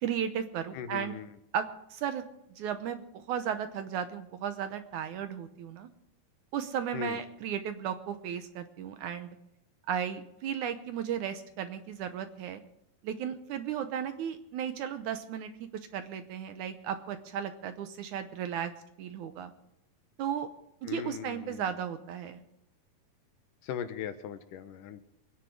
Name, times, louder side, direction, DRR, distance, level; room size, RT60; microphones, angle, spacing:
voice 1, 0.0-1.1 1.5-2.2 2.5-5.9 6.5-9.4 9.9-12.6 13.0-18.7 19.0-19.5 20.2-20.5 20.8-22.4, right 8 dB, 75° right, 9 dB, 2.1 m, -35 dB
voice 2, 0.7-1.3 6.9-7.2 20.8-21.6 23.6-25.0, left 8 dB, 75° left, 10 dB, 2.4 m, -39 dB
23.5 x 10.0 x 4.8 m, 0.82 s
omnidirectional pair, 4.0 m